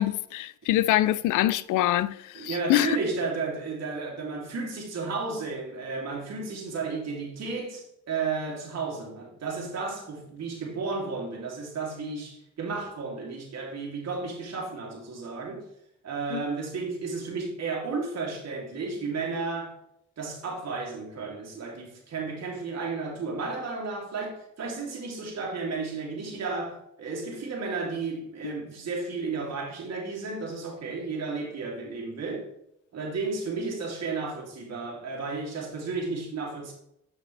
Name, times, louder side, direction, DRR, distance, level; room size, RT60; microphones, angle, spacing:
voice 1, 0.0-3.0 16.3-16.4, left 14 dB, 85° left, 0.5 m, -25 dB
voice 2, 2.3-15.7 16.0-19.8 20.2-32.5 32.9-36.7, right 4 dB, 60° right, 2.9 m, -33 dB
8.1 x 6.6 x 3.3 m
cardioid pair, 90°, 30 cm